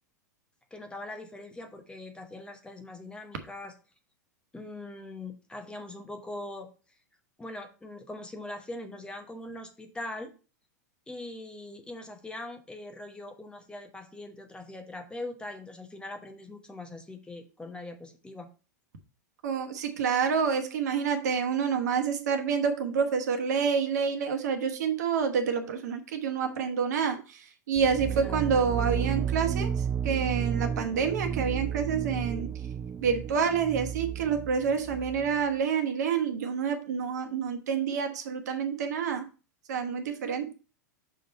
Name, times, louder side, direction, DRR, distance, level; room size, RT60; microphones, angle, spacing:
voice 1, 0.7-3.7 4.5-6.7 7.4-10.3 11.1-18.5 28.2-28.4, left 2 dB, 10° left, 1.0 m, -41 dB
voice 2, 19.4-32.5 33.0-39.3 39.7-40.5, right 6 dB, 70° right, 1.2 m, -28 dB
sound 1, 27.8-35.4, right 8 dB, 20° right, 0.3 m, -32 dB
6.2 x 3.6 x 5.4 m
hypercardioid pair, 100°, 9 cm